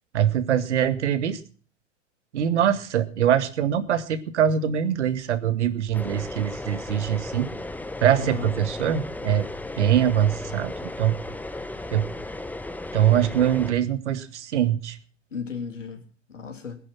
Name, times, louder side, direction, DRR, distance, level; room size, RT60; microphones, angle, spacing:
voice 1, 0.1-1.4 2.3-7.5 8.0-9.5 9.8-11.2 11.9-12.0 12.9-15.0, right 9 dB, 70° right, 11 dB, 2.2 m, -23 dB
sound 1, 5.9-13.7, left 2 dB, 5° left, 1.2 m, -35 dB
voice 2, 8.1-8.5 15.3-16.8, left 6 dB, 85° left, 5 dB, 3.1 m, -35 dB
20.5 x 11.0 x 6.0 m, 0.40 s
hypercardioid pair, 105°, 36 cm